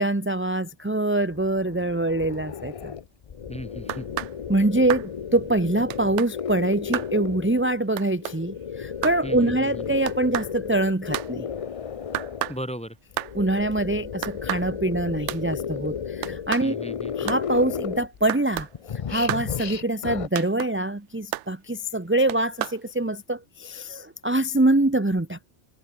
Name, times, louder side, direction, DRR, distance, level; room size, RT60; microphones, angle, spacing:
voice 1, 0.0-2.9 4.5-11.5 13.3-16.8 17.2-18.7 19.1-25.5, right 2 dB, 10° right, 1.0 m, -24 dB
sound 1, 1.2-7.8 8.2-12.6 13.1-18.3 18.5-20.3, left 7 dB, 45° left, 0.5 m, -34 dB
voice 2, 3.5-4.1 9.2-9.9 12.5-13.0 16.6-17.3, equal, 5° left, 1.3 m, -36 dB
sound 2, 3.9-4.3 4.9-5.1 5.9-6.3 6.9-7.1 8.0-8.4 9.0-9.2 10.1-10.5 11.1-11.3 12.1-12.6 13.2-13.3 14.2-14.7 15.3-15.4 16.2-16.7 17.3-17.4 18.3-18.7 19.3-19.5 20.3-20.7 21.3-21.5 22.3-22.8, right 13 dB, 90° right, 0.9 m, -30 dB
omnidirectional pair, 1.2 m